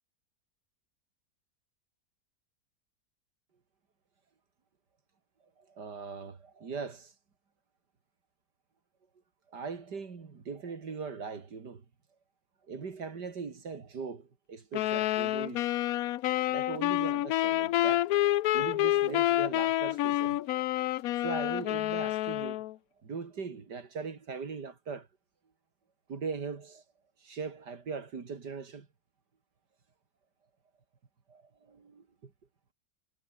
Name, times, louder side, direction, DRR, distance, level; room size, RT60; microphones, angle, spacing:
voice 1, 5.6-7.1 9.5-11.8 12.7-15.7 16.5-18.1 18.5-20.7 21.2-22.6 23.0-25.1 26.1-26.8 27.2-28.9 31.3-32.3, right 5 dB, 75° right, 3.0 m, -40 dB
sound 1, 14.7-22.7, left 14 dB, 70° left, 1.0 m, -28 dB
omnidirectional pair, 1.8 m